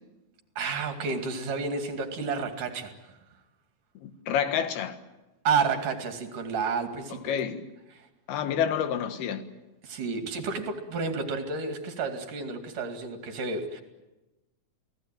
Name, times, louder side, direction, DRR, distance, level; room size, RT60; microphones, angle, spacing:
voice 1, 0.6-2.9 5.4-7.3 7.9-8.1 9.8-13.8, right 5 dB, 60° right, 3.8 m, -30 dB
voice 2, 4.0-5.0 7.3-7.7 8.3-9.4, left 8 dB, 85° left, 3.5 m, -28 dB
28.5 x 18.5 x 9.1 m
omnidirectional pair, 4.3 m